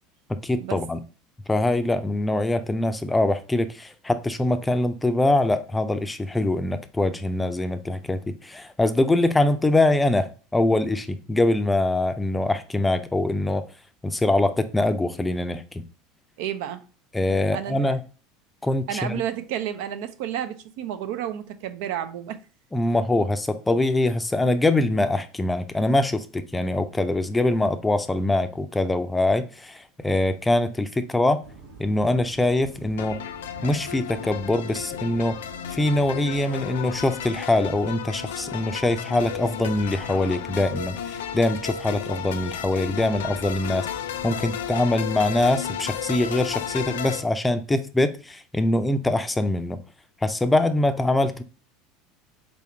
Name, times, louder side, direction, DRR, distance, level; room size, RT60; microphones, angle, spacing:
voice 1, 0.3-1.0 1.5-13.6 14.0-15.8 17.1-18.0 18.6-19.2 22.7-31.4 31.8-33.2 33.6-35.4 35.7-43.9 44.2-49.8 50.2-51.4, left 2 dB, 10° left, 0.5 m, -23 dB
voice 2, 16.4-16.8 17.2-18.0 18.9-22.4, right 10 dB, 70° right, 0.5 m, -31 dB
sound 1, 31.4-47.2, right 5 dB, 90° right, 1.3 m, -47 dB
sound 2, 33.0-47.2, left 9 dB, 80° left, 0.4 m, -33 dB
4.1 x 3.5 x 2.7 m
hypercardioid pair, 85°, 0 cm